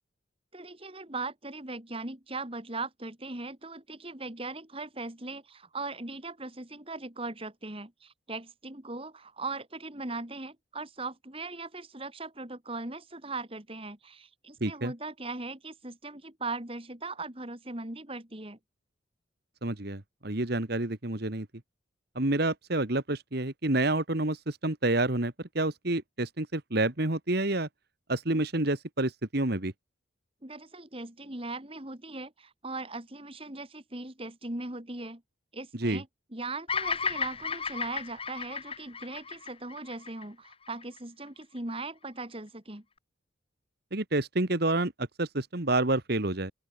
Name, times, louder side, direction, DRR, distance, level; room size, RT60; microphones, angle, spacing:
voice 1, 0.5-18.6 30.4-35.2 35.5-36.1 36.3-42.8, right 3 dB, 30° right, 2.4 m, -39 dB
voice 2, 14.6-14.9 19.6-21.5 22.2-27.7 28.1-29.7 35.8-36.0 43.9-46.5, right 2 dB, 50° right, 1.8 m, -28 dB
Bird vocalization bird call bird song, 36.7-41.0, left 5 dB, 30° left, 6.1 m, -34 dB
open air
head